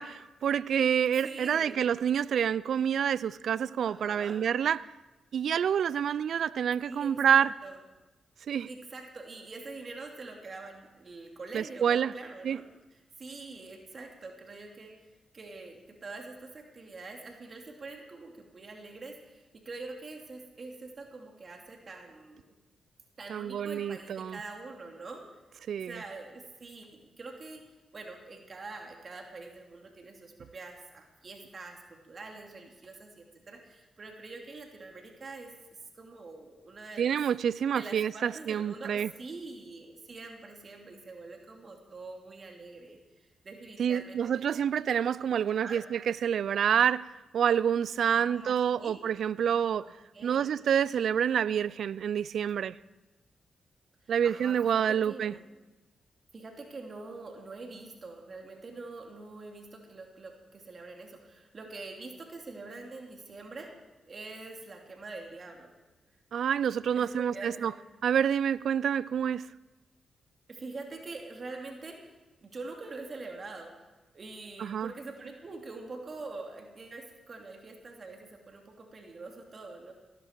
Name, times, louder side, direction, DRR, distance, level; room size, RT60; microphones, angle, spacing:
voice 1, 0.0-4.8 5.3-7.5 8.5-8.7 11.5-12.1 12.4-12.6 23.3-24.4 25.7-26.0 37.0-39.1 43.8-49.9 50.2-52.7 54.1-55.3 66.3-67.7 68.0-69.4 74.6-74.9, right 8 dB, 70° right, 20 dB, 0.4 m, -28 dB
voice 2, 1.2-1.9 3.9-4.4 6.9-7.8 8.7-12.6 13.2-15.1 15.3-22.5 23.2-25.2 25.9-27.6 27.9-35.5 35.9-37.2 37.7-44.2 45.6-45.8 48.1-49.0 49.8-50.5 54.0-55.4 56.3-63.7 64.1-65.7 66.9-67.7 70.5-73.7 74.1-79.9, right 3 dB, 50° right, 2 dB, 2.8 m, -45 dB
17.5 x 14.5 x 4.7 m, 1.1 s
hypercardioid pair, 40°, 0 cm